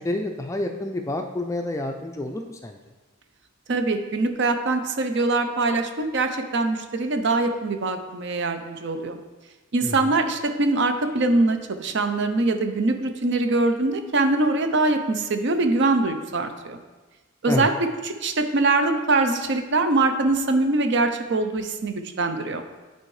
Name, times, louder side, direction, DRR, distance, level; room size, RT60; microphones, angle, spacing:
voice 1, 0.0-2.8 9.8-9.9 17.5-17.7, left 1 dB, 15° left, 4 dB, 0.4 m, -28 dB
voice 2, 3.7-9.2 9.7-16.8 17.4-22.6, right 2 dB, 55° right, 7 dB, 0.6 m, -23 dB
10.5 x 4.4 x 3.2 m, 1.2 s
head